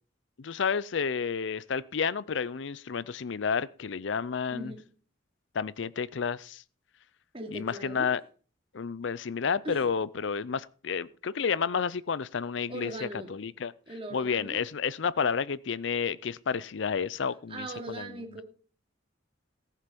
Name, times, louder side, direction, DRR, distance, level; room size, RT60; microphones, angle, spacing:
voice 1, 0.4-4.7 5.5-6.6 7.5-8.2 8.7-13.7 14.1-18.1, left 6 dB, 65° left, 0.5 m, -31 dB
voice 2, 4.5-4.8 7.3-8.1 9.6-9.9 12.7-13.3 13.9-14.6 17.5-18.4, right 1 dB, 30° right, 2.9 m, -39 dB
18.0 x 7.4 x 5.3 m
head